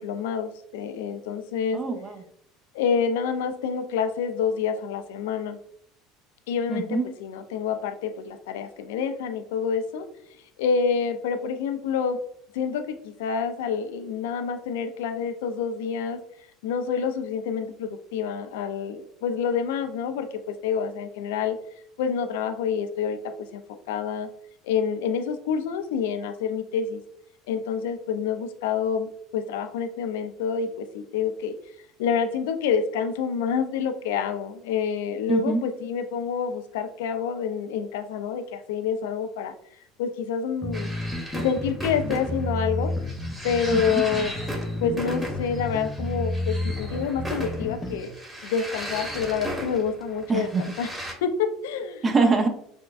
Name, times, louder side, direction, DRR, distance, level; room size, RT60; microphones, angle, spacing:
voice 1, 0.0-1.8 2.7-5.6 6.5-10.1 10.6-12.2 12.5-16.2 16.6-21.6 22.0-23.6 23.9-24.3 24.6-27.0 27.5-31.6 32.0-39.5 40.0-40.9 41.3-42.9 43.4-44.3 44.8-48.1 48.4-50.9 51.2-52.0, left 6 dB, 80° left, 8 dB, 0.4 m, -27 dB
voice 2, 1.7-2.2 6.7-7.1 35.3-35.6 43.7-44.0 50.3-50.6 52.0-52.5, right 3 dB, 30° right, 4 dB, 0.7 m, -23 dB
sound 1, 40.6-48.0, left 1 dB, 15° left, 0.8 m, -31 dB
sound 2, 40.7-51.1, equal, 5° right, 1.3 m, -36 dB
6.0 x 2.2 x 2.4 m, 0.70 s
hypercardioid pair, 90°, 0 cm